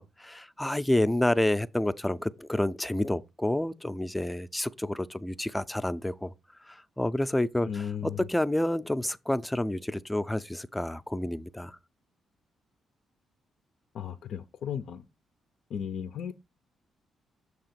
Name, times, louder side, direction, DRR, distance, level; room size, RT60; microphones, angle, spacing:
voice 1, 0.0-6.3 6.7-11.8, left 1 dB, 5° left, 0.4 m, -29 dB
voice 2, 7.7-8.3 13.9-15.0 15.7-16.3, left 8 dB, 70° left, 0.4 m, -35 dB
6.8 x 2.9 x 5.7 m
cardioid pair, 120°, 0 cm